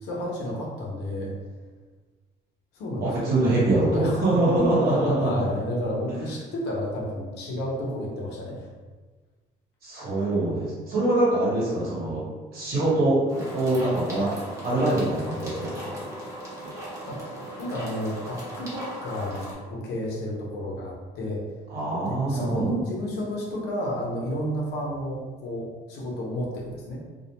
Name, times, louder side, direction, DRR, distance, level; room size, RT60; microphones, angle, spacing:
voice 1, 0.0-1.3 2.7-3.6 3.9-4.3 4.6-4.7 5.2-8.7 17.1-17.2 17.6-21.4 22.0-27.0, equal, 75° left, -3 dB, 0.8 m, -31 dB
voice 2, 3.0-5.5 6.1-6.2 9.8-12.2 12.5-13.2 13.5-14.3 14.6-16.0 21.7-22.7, right 2 dB, 65° right, -7 dB, 0.9 m, -24 dB
sound 1, 13.3-19.5, equal, 20° right, 0.9 m, -38 dB
2.3 x 2.1 x 2.9 m, 1.3 s
cardioid pair, 110°, 17 cm